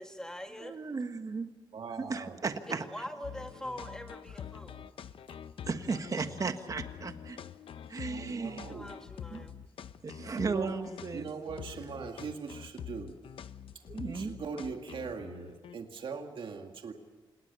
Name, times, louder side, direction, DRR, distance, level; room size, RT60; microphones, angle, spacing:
voice 1, 0.0-0.8 2.7-4.8 8.7-9.5, left 1 dB, 5° left, 5 dB, 2.1 m, -43 dB
voice 2, 0.6-1.5 2.1-2.8 5.7-7.4 7.9-8.7 9.3-9.4 10.0-11.3 13.9-14.3, right 4 dB, 40° right, 8 dB, 1.5 m, -35 dB
voice 3, 1.7-2.8 8.1-9.0 10.4-10.7 11.1-13.1 14.0-16.9, right 5 dB, 70° right, 4 dB, 2.0 m, -41 dB
sound 1, 3.2-15.8, left 9 dB, 85° left, 0.7 m, -46 dB
28.5 x 19.0 x 6.9 m, 1.2 s
wide cardioid pair, 140°, 9 cm